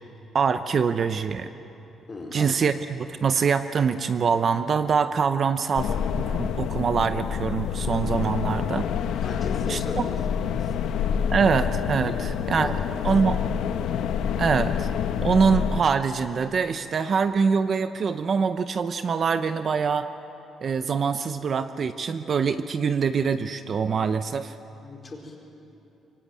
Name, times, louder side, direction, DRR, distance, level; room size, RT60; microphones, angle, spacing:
voice 1, 0.3-1.5 2.3-8.9 9.7-10.0 11.3-12.7 13.0-13.4 14.4-14.9 15.2-20.1 20.6-24.5, right 6 dB, 40° right, 10 dB, 0.7 m, -24 dB
voice 2, 2.1-2.6 9.2-10.2 10.5-10.9 12.6-12.7 13.0-13.3 24.8-25.4, left 3 dB, 25° left, 0 dB, 4.3 m, -37 dB
sound 1, 5.8-15.8, left 8 dB, 85° left, 1.1 m, -27 dB
25.5 x 23.0 x 9.0 m, 2.9 s
cardioid pair, 145°, 0 cm